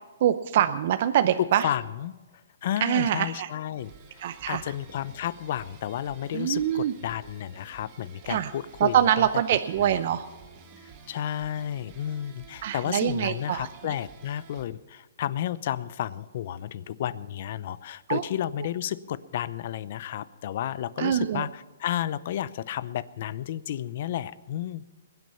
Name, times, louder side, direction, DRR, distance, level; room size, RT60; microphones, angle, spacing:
voice 1, 0.2-1.7 2.8-3.5 4.2-4.6 6.3-6.9 8.3-8.5 8.9-10.2 12.6-13.7 18.1-18.2 21.0-21.5, right 10 dB, 50° right, 9 dB, 0.6 m, -24 dB
voice 2, 1.4-9.3 9.8-10.0 10.8-24.8, left 11 dB, 50° left, 18 dB, 0.7 m, -32 dB
sound 1, 3.8-14.6, right 6 dB, 35° right, 2.7 m, -51 dB
21.5 x 9.4 x 5.7 m, 1.2 s
hypercardioid pair, 145°, 0 cm